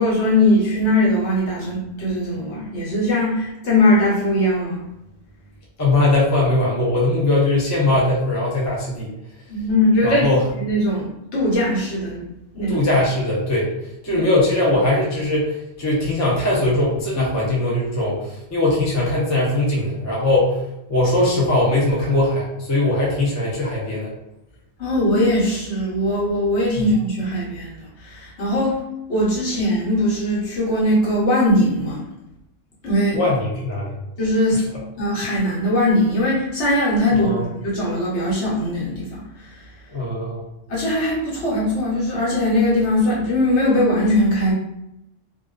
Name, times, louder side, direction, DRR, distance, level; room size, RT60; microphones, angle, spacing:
voice 1, 0.0-4.8 9.5-10.3 10.6-12.2 12.5-12.8 14.1-14.2 24.8-28.8 29.1-32.0 32.8-33.2 34.2-34.7 35.0-39.6 40.7-44.5, left 1 dB, 65° left, -6 dB, 1.1 m, -20 dB
voice 2, 5.8-9.1 10.0-10.5 12.7-13.7 14.0-20.6 20.9-24.1 26.8-26.9 33.1-34.0 34.5-34.6 37.1-37.4 39.9-40.4, left 2 dB, 25° left, -5 dB, 0.3 m, -20 dB
2.4 x 2.3 x 2.3 m, 0.87 s
omnidirectional pair, 1.3 m